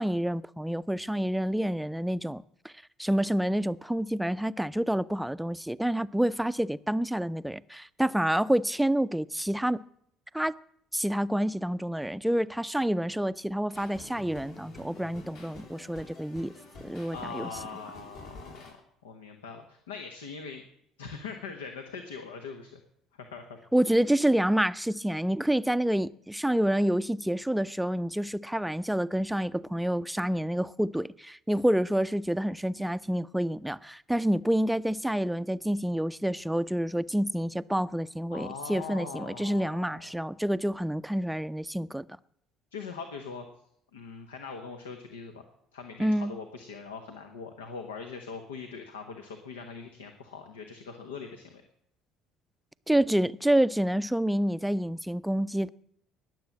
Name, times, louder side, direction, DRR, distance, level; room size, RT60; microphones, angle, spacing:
voice 1, 0.0-2.7 3.0-9.8 10.3-10.6 10.9-16.5 16.8-17.5 23.7-42.0 46.0-46.4 52.9-55.7, right 1 dB, 5° right, 0.5 m, -28 dB
sound 1, 13.7-18.7, left 2 dB, 65° left, 6.1 m, -48 dB
voice 2, 17.1-18.8 19.0-20.6 21.0-22.8 23.1-23.6 38.3-40.1 42.7-43.5 43.9-45.4 45.7-51.6, left 5 dB, 80° left, 1.1 m, -41 dB
19.5 x 7.7 x 7.3 m
hypercardioid pair, 55°, 0 cm